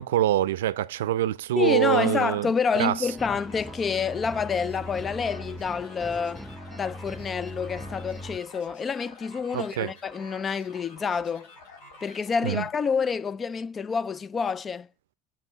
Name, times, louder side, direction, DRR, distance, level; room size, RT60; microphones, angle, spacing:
voice 1, 0.0-2.5 2.8-2.9 9.5-9.9 12.4-12.6, right 13 dB, 75° right, 0.5 m, -25 dB
voice 2, 1.6-6.4 6.7-11.5 12.0-14.9, left 6 dB, 30° left, 0.5 m, -28 dB
sound 1, 3.0-8.4, equal, 5° right, 0.7 m, -40 dB
sound 2, 3.2-12.9, left 2 dB, 75° left, 3.0 m, -49 dB
6.2 x 4.3 x 4.4 m
hypercardioid pair, 75°, 0 cm